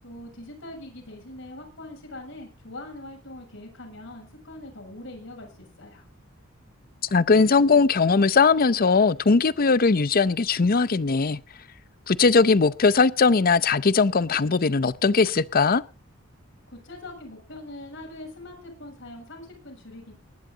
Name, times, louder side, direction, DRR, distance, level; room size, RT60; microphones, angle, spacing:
voice 1, 0.0-6.1 16.7-20.1, left 1 dB, 65° left, 7.2 m, -42 dB
voice 2, 7.1-11.4 12.1-15.8, left 4 dB, 45° left, 0.6 m, -20 dB
19.5 x 11.5 x 4.0 m
head